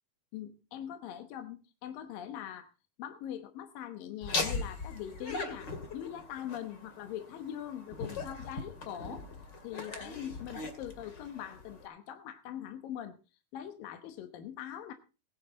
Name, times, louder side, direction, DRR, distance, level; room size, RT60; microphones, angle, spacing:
voice 1, 0.3-2.7 3.0-9.2 9.6-13.2 13.5-14.9, left 10 dB, 75° left, 7 dB, 2.7 m, -42 dB
Laughter, 4.2-11.9, left 3 dB, 35° left, 2.3 m, -39 dB
20.0 x 10.0 x 3.9 m, 0.34 s
omnidirectional pair, 4.2 m